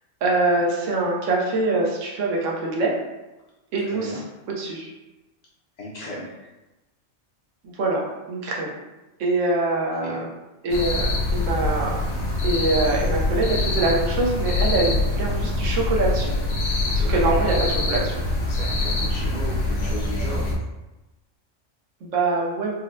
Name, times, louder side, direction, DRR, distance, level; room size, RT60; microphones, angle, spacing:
voice 1, 0.2-2.9 3.7-4.2 4.6-4.9 7.6-8.7 9.2-10.2 10.6-12.0 12.4-16.3 16.9-18.2 22.0-22.7, right 2 dB, 80° right, -2 dB, 1.1 m, -24 dB
voice 2, 3.8-4.2 5.8-6.3 10.0-10.3 17.0-17.3 18.5-20.6, left 1 dB, 55° left, -6 dB, 0.5 m, -36 dB
sound 1, 10.7-20.5, left 2 dB, 80° left, 1.0 m, -24 dB
4.0 x 2.1 x 2.5 m, 1.0 s
omnidirectional pair, 1.3 m